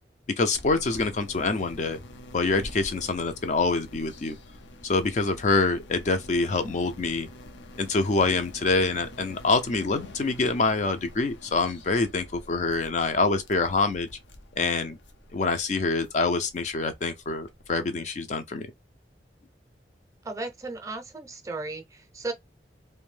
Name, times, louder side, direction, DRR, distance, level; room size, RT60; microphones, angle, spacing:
voice 1, 0.4-2.0 2.3-4.4 4.8-7.3 7.8-14.1 14.6-15.0 15.3-18.7, left 3 dB, 40° left, 0.4 m, -26 dB
sound 1, 0.5-17.7, left 1 dB, 85° left, 0.6 m, -46 dB
voice 2, 20.2-22.3, right 2 dB, 20° right, 0.5 m, -35 dB
2.5 x 2.1 x 3.2 m
head